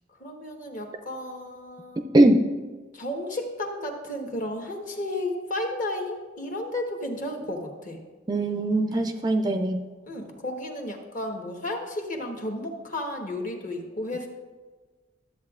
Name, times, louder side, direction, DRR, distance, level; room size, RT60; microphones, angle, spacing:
voice 1, 0.2-2.1 2.9-8.0 10.1-14.3, left 1 dB, 40° left, 2 dB, 1.1 m, -33 dB
voice 2, 8.3-9.8, right 1 dB, 20° right, 6 dB, 0.4 m, -21 dB
12.5 x 7.8 x 2.4 m, 1.4 s
head